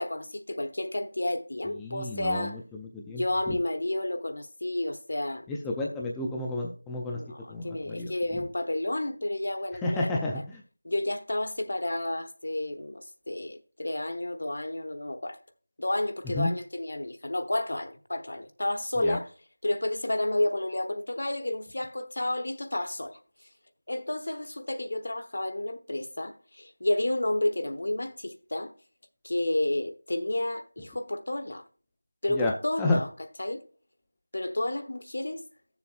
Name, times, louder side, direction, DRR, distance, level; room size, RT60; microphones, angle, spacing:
voice 1, 0.0-2.6 3.2-5.5 7.1-10.4 10.8-15.4 15.8-19.3 19.6-23.2 23.9-28.7 29.2-31.6 32.2-33.1 33.4-33.6 34.3-35.4, left 1 dB, 60° left, 1.0 m, -31 dB
voice 2, 1.8-3.6 5.5-7.2 7.5-8.1 9.8-10.4 16.3-16.5 19.0-19.2 32.3-32.5 32.8-33.0, left 2 dB, 5° left, 0.4 m, -31 dB
13.5 x 7.0 x 2.3 m
figure-of-eight pair, 175°, 0 cm